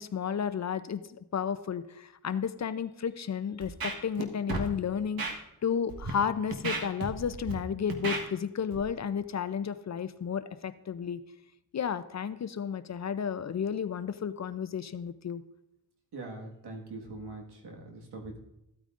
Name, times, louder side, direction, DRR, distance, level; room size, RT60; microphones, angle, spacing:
voice 1, 0.0-11.2 11.7-15.4, left 7 dB, 45° left, 13 dB, 0.6 m, -32 dB
Scratching (performance technique), 3.6-4.2 4.5-4.7 5.2-5.3 5.9-6.1 6.5-7.5 7.9-8.2 8.7-8.8, right 3 dB, 65° right, 1.4 m, -33 dB
voice 2, 16.1-18.4, right 2 dB, 85° right, 1 dB, 1.8 m, -42 dB
14.5 x 8.9 x 2.5 m, 0.86 s
cardioid pair, 70°, 39 cm